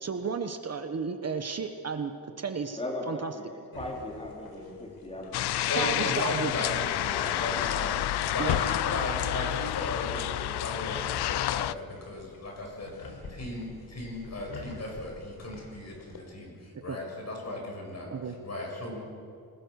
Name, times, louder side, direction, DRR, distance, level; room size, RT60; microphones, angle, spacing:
voice 1, 0.0-2.1 2.4-2.8 3.1-3.3 5.8-6.7 8.4-8.6 16.9-17.0 18.1-18.3, right 5 dB, 40° right, 7 dB, 1.3 m, -33 dB
voice 2, 2.8-5.5 7.1-7.4, left 1 dB, 15° left, -1 dB, 4.3 m, -38 dB
sound 1, 3.7-16.2, left 3 dB, 70° left, 4.7 m, -46 dB
sound 2, 5.3-11.7, left 14 dB, 85° left, 0.6 m, -29 dB
voice 3, 5.7-18.1 18.4-19.0, left 2 dB, 40° left, 0 dB, 7.3 m, -36 dB
27.0 x 20.5 x 6.6 m, 2.5 s
wide cardioid pair, 130°, 38 cm